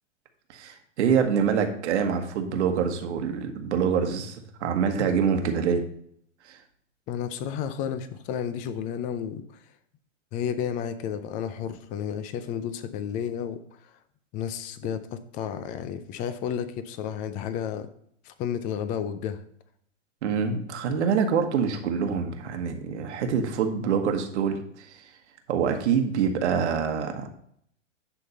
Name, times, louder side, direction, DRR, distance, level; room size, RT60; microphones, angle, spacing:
voice 1, 0.5-5.8 6.4-6.6 20.2-25.1 25.5-27.3, right 6 dB, 60° right, 5 dB, 1.4 m, -25 dB
voice 2, 7.1-9.6 10.3-13.6 14.3-17.9 18.2-19.4, left 8 dB, 20° left, 12 dB, 0.5 m, -32 dB
10.0 x 3.6 x 5.6 m, 0.67 s
hypercardioid pair, 120°, 39 cm